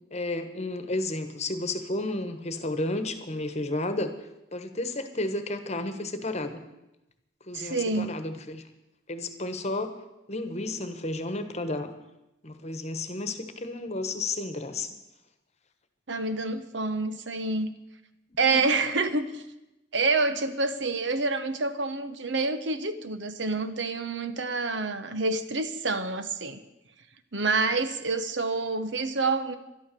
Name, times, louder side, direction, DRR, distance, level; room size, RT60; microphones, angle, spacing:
voice 1, 0.1-4.1 4.5-6.6 7.5-8.6 9.1-10.0 10.3-11.9 12.4-14.9 18.4-18.6, left 2 dB, 35° left, 9 dB, 1.2 m, -32 dB
voice 2, 7.5-8.1 16.1-17.7 18.4-19.4 19.9-26.6 27.3-29.6, right 3 dB, 75° right, 10 dB, 1.0 m, -27 dB
12.0 x 12.0 x 6.8 m, 0.93 s
head